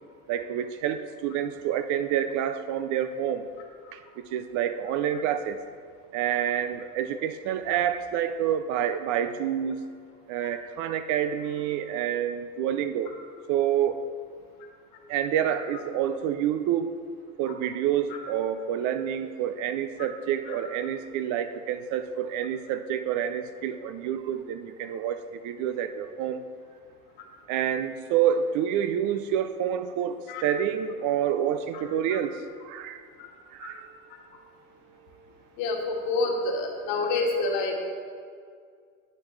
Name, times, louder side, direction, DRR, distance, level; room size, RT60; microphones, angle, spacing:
voice 1, 0.3-3.4 4.3-5.6 6.1-9.8 10.3-13.1 13.5-14.1 15.1-16.9 17.4-26.4 27.5-32.4 32.6-33.0 33.5-33.9, right 9 dB, 45° right, 10 dB, 0.5 m, -28 dB
voice 2, 35.6-37.7, left 3 dB, 55° left, 0 dB, 2.0 m, -28 dB
10.5 x 8.7 x 3.2 m, 2.1 s
hypercardioid pair, 95°, 43 cm